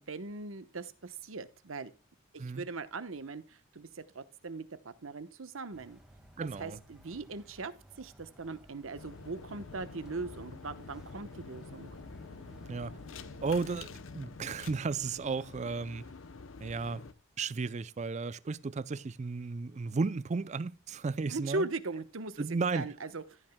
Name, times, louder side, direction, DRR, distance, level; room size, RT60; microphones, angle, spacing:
voice 1, 0.0-1.9 2.3-6.0 6.6-12.0 21.3-23.4, right 3 dB, 85° right, 1.0 m, -40 dB
sound 1, 5.7-14.0, right 1 dB, 5° right, 1.8 m, -58 dB
voice 2, 6.4-6.8 12.7-12.9 13.4-13.9 14.1-16.0 16.6-17.0 17.4-21.7 22.4-22.9, right 4 dB, 35° right, 0.4 m, -34 dB
sound 2, 8.9-14.8, right 1 dB, 55° right, 2.7 m, -61 dB
sound 3, 9.0-17.1, left 4 dB, 80° left, 0.8 m, -48 dB
14.5 x 8.8 x 2.2 m
head